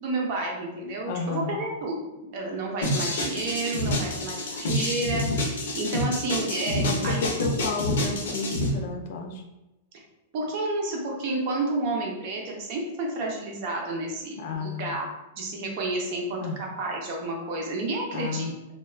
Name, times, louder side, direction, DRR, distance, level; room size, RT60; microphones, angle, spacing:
voice 1, 0.0-5.2 5.8-7.5 10.3-15.1 15.4-18.5, right 2 dB, 40° right, -1 dB, 0.6 m, -30 dB
voice 2, 1.1-1.6 6.8-9.4 14.4-15.0 16.4-16.6 18.1-18.5, left 5 dB, 50° left, 2 dB, 0.4 m, -32 dB
sound 1, 2.8-8.7, left 1 dB, 80° left, 0.8 m, -27 dB
2.3 x 2.3 x 3.1 m, 0.98 s
supercardioid pair, 170°, 0 cm